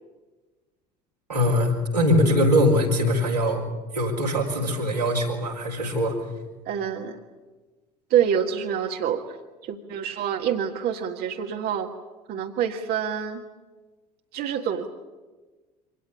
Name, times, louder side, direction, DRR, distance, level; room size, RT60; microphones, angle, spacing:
voice 1, 1.3-3.6 3.9-6.2, left 1 dB, 90° right, -2 dB, 4.0 m, -22 dB
voice 2, 6.7-7.2 8.1-9.4 9.6-11.9 12.3-13.4 14.3-14.9, right 8 dB, 50° right, 3 dB, 1.7 m, -26 dB
25.0 x 18.5 x 9.8 m, 1.3 s
figure-of-eight pair, 60°, 20 cm